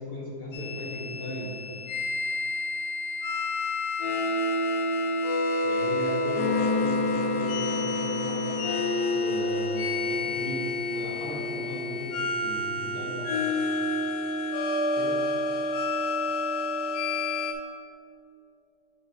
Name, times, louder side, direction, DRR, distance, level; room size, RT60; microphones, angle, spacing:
voice 1, 0.0-1.6 5.6-8.5 9.1-13.3 14.9-15.3, equal, 40° left, -4 dB, 0.8 m, -36 dB
sound 1, 0.5-17.5, left 2 dB, 80° left, 0.8 m, -28 dB
6.6 x 4.3 x 4.1 m, 2.5 s
omnidirectional pair, 2.3 m